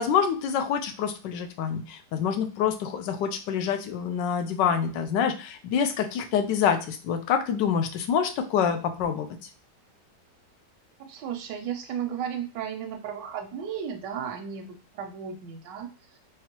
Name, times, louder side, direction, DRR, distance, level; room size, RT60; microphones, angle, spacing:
voice 1, 0.0-9.3, left 7 dB, 90° left, 6 dB, 1.3 m, -26 dB
voice 2, 11.0-16.2, right 8 dB, 85° right, 3 dB, 1.2 m, -34 dB
3.5 x 3.3 x 2.9 m, 0.34 s
omnidirectional pair, 1.9 m